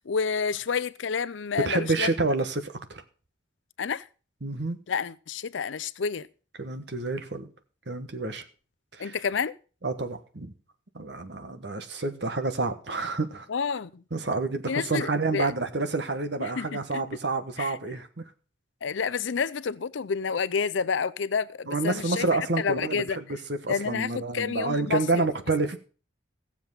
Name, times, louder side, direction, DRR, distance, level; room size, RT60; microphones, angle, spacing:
voice 1, 0.1-2.1 3.8-4.0 4.9-6.3 9.0-9.5 13.5-14.0 14.7-15.5 16.4-17.0 17.6-17.8 18.8-22.2 22.6-23.2 23.7-25.3, left 6 dB, 85° left, 0.5 m, -29 dB
voice 2, 1.6-3.0 4.4-4.8 6.6-7.5 7.9-8.4 8.9-9.2 9.8-10.5 10.9-13.5 14.1-18.2 21.7-25.8, right 3 dB, 65° right, 1.3 m, -29 dB
15.5 x 7.3 x 5.5 m
head